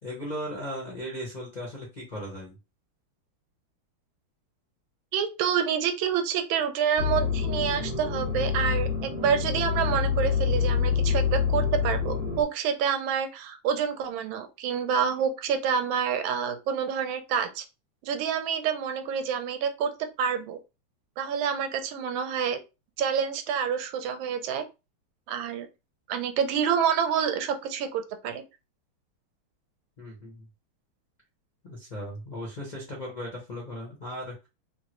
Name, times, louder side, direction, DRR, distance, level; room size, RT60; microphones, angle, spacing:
voice 1, 0.0-2.5 30.0-30.5 31.6-34.3, equal, 85° left, -2 dB, 0.4 m, -37 dB
voice 2, 5.1-17.6 18.0-19.9 20.2-20.6 21.2-22.6 23.0-24.6 25.3-25.7 26.1-28.4, right 7 dB, 80° right, 8 dB, 1.3 m, -28 dB
sound 1, 7.0-12.4, left 6 dB, 45° right, 0.8 m, -26 dB
3.6 x 2.0 x 2.9 m, 0.27 s
omnidirectional pair, 2.2 m